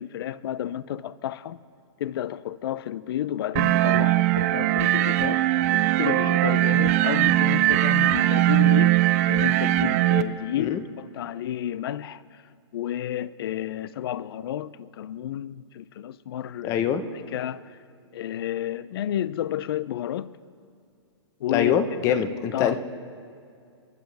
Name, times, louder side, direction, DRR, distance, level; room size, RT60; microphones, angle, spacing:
voice 1, 0.0-1.6 2.0-5.4 5.7-12.4 12.7-16.9 17.3-17.8 18.1-20.3 21.4-21.8 22.1-22.2 22.5-22.8, left 11 dB, 55° left, 0.5 m, -31 dB
sound 1, 3.6-10.2, right 15 dB, 30° right, 0.5 m, -20 dB
voice 2, 16.6-17.0 21.5-22.8, left 8 dB, 20° left, 0.7 m, -24 dB
28.0 x 12.0 x 3.4 m
hypercardioid pair, 155°, 15 cm